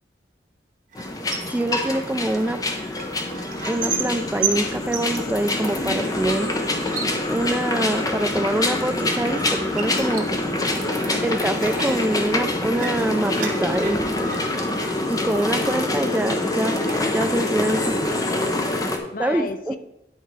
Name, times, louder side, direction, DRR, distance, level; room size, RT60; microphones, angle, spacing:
sound 1, 0.9-19.0, left 2 dB, 20° left, 0.8 m, -25 dB
sound 2, 0.9-16.3 16.6-17.8 18.1-18.8, right 6 dB, 45° right, 1.1 m, -36 dB
voice 1, 1.5-2.6 3.7-6.5 7.3-10.3 11.2-14.0 15.1-16.8 17.1-18.0 19.2-19.8, right 1 dB, 10° right, 8 dB, 0.3 m, -25 dB
voice 2, 10.5-10.9 13.8-14.8 18.7-19.8, left 3 dB, 50° left, 9 dB, 0.6 m, -37 dB
10.0 x 4.5 x 4.7 m, 0.85 s
head